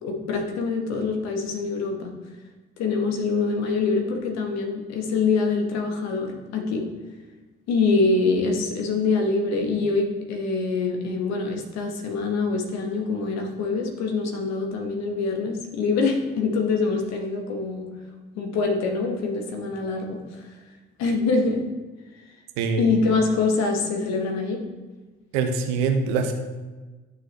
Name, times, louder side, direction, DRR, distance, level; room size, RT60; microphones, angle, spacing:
voice 1, 0.0-2.1 2.8-6.9 7.7-17.9 18.3-20.5 21.0-21.7 22.8-24.7, left 4 dB, 65° left, 3 dB, 1.6 m, -25 dB
voice 2, 25.3-26.3, right 5 dB, 75° right, 5 dB, 1.0 m, -23 dB
11.0 x 6.4 x 3.1 m, 1.3 s
figure-of-eight pair, 40°, 29 cm